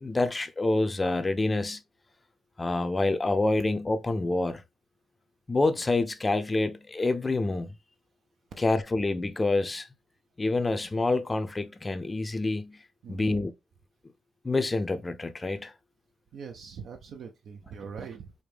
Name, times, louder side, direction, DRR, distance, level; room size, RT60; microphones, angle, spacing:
voice 1, 0.0-1.8 2.6-4.6 5.5-7.7 8.6-9.9 10.4-12.8 13.1-13.5 14.4-15.7, left 2 dB, 20° left, 0.5 m, -27 dB
voice 2, 13.0-13.4 16.3-18.3, right 6 dB, 65° right, 0.5 m, -42 dB
4.9 x 2.1 x 3.3 m
cardioid pair, 90°, 0 cm